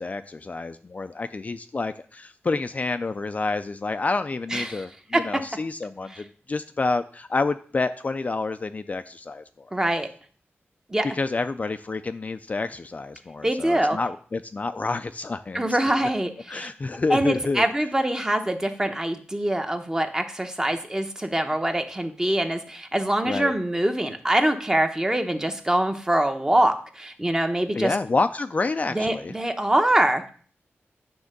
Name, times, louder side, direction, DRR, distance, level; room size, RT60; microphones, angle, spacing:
voice 1, 0.0-9.7 11.2-15.7 16.5-17.7 23.2-23.5 27.7-29.3, left 3 dB, 35° left, 9 dB, 0.4 m, -28 dB
voice 2, 4.5-4.9 5.1-5.2 6.1-6.2 9.7-10.1 10.9-11.1 13.4-14.0 15.5-16.7 17.1-27.9 28.9-30.3, right 1 dB, 15° right, 6 dB, 0.8 m, -24 dB
9.5 x 3.6 x 6.5 m, 0.43 s
wide cardioid pair, 130°, 4 cm